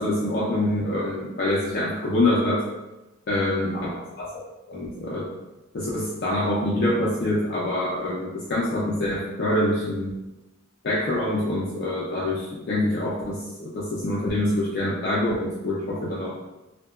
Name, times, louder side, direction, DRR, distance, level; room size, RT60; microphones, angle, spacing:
voice 1, 0.0-2.6 3.3-3.9 4.2-5.3 5.7-10.1 10.8-16.3, left 1 dB, 55° left, -6 dB, 0.4 m, -25 dB
2.7 x 2.1 x 2.3 m, 1.0 s
head